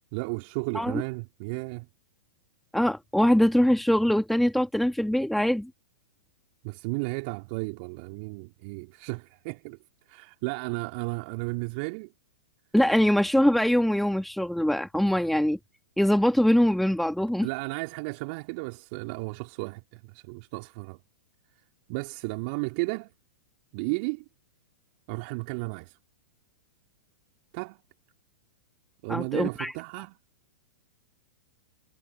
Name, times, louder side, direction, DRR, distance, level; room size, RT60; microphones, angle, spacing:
voice 1, 0.1-1.9 6.6-9.8 10.1-12.1 17.4-21.0 21.9-23.1 23.7-24.2 25.1-26.0 27.5-27.8 29.0-30.2, right 31 dB, 45° right, 2.6 m, -33 dB
voice 2, 2.7-5.7 12.7-15.6 16.0-17.5 29.1-29.7, equal, ahead, 2.1 m, -23 dB
figure-of-eight pair, 105°, 8 cm